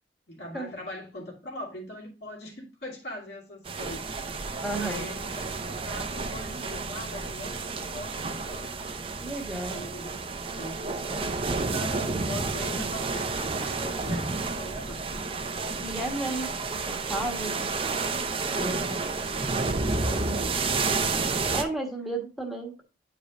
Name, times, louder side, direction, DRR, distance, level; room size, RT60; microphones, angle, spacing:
voice 1, 0.3-5.4 5.8-8.7 9.7-15.2 18.5-21.4, left 1 dB, 65° left, -1 dB, 2.7 m, -42 dB
sound 1, 3.7-21.6, right 3 dB, 30° right, 0.7 m, -30 dB
voice 2, 4.6-5.1 9.2-9.8 15.8-16.5 16.9-17.7 18.4-18.8 19.5-19.7 20.1-20.4 21.5-22.8, right 1 dB, ahead, 1 dB, 1.2 m, -33 dB
9.6 x 5.0 x 2.5 m, 0.31 s
head